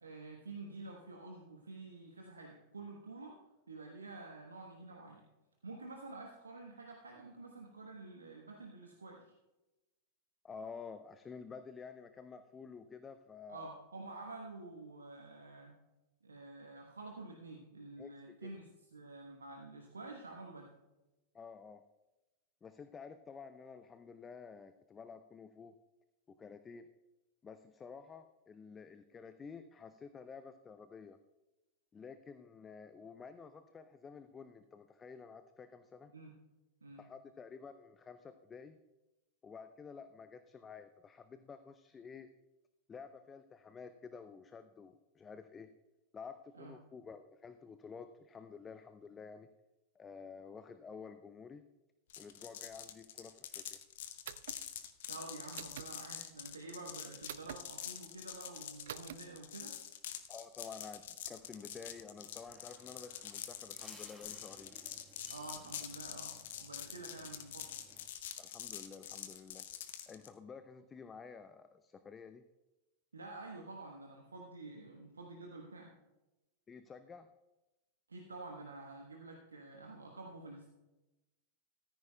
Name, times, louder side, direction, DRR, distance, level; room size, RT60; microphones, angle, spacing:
voice 1, 0.0-3.4 3.7-5.3 5.6-9.3 13.5-15.8 16.2-20.8 36.1-36.4 36.8-37.0 46.6-46.8 55.1-59.8 65.3-67.7 73.1-75.9 78.1-80.7, right 3 dB, 75° right, 2 dB, 1.1 m, -49 dB
voice 2, 10.4-13.7 18.0-18.1 18.4-18.6 21.3-21.8 22.6-25.7 26.3-26.9 27.4-31.2 31.9-36.1 37.0-38.8 39.4-42.3 42.9-45.7 46.1-49.5 50.0-51.6 52.2-53.8 60.3-64.7 68.4-69.7 70.1-72.4 76.7-77.3, left 5 dB, 20° left, 10 dB, 0.5 m, -51 dB
sound 1, 52.1-70.3, left 10 dB, 55° left, 0.8 m, -46 dB
sound 2, 54.3-54.6 55.5-55.9 57.3-57.6 58.9-59.2, right 11 dB, 60° right, 0.4 m, -45 dB
sound 3, 61.3-68.1, right 2 dB, 10° right, 1.4 m, -62 dB
15.0 x 14.0 x 2.3 m, 1.0 s
figure-of-eight pair, 90°, 0 cm